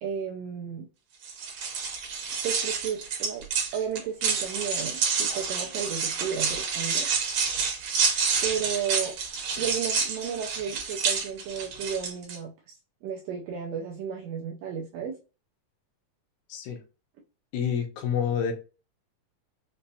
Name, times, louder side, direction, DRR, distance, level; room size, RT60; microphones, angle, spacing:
voice 1, 0.0-0.9 2.4-3.5 3.7-7.1 8.4-9.1 9.6-12.8 13.0-15.2, right 7 dB, 80° right, 0 dB, 1.5 m, -33 dB
sound 1, 1.2-12.4, right 5 dB, 65° right, 1.9 m, -29 dB
voice 2, 17.5-18.5, left 7 dB, 80° left, 3 dB, 2.1 m, -28 dB
5.3 x 2.0 x 2.6 m, 0.33 s
omnidirectional pair, 3.4 m